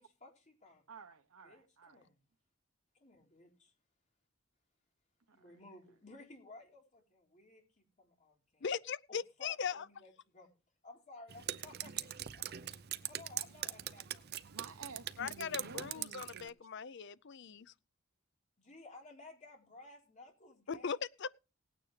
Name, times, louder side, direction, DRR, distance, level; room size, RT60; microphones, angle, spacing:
voice 1, 0.0-0.8 1.4-2.2 2.9-3.7 5.3-8.7 9.1-10.5 10.8-12.8 13.1-14.2 18.6-21.0, left 2 dB, 35° left, 3.8 m, -56 dB
voice 2, 0.9-2.0 14.5-16.5, right 5 dB, 80° right, 0.9 m, -52 dB
voice 3, 8.6-9.8 15.2-17.7 20.7-21.3, left 6 dB, 55° left, 0.5 m, -39 dB
Drip, 11.3-16.5, right 11 dB, 50° right, 0.6 m, -42 dB
18.5 x 9.3 x 3.3 m
head